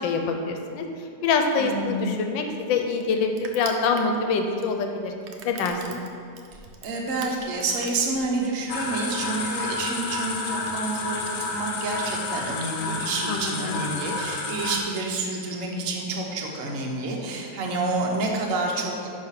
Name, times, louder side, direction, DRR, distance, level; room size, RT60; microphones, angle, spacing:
voice 1, 0.0-5.1 5.4-6.0 13.3-13.8, left 4 dB, 80° left, 4 dB, 1.4 m, -25 dB
voice 2, 1.6-2.0 6.8-19.1, right 2 dB, 50° right, -1 dB, 1.2 m, -28 dB
Crushing, 1.8-8.6, right 5 dB, 85° right, 1.5 m, -44 dB
sound 1, 8.7-14.8, left 3 dB, 60° left, 0.9 m, -30 dB
9.7 x 3.2 x 5.8 m, 2.4 s
omnidirectional pair, 2.0 m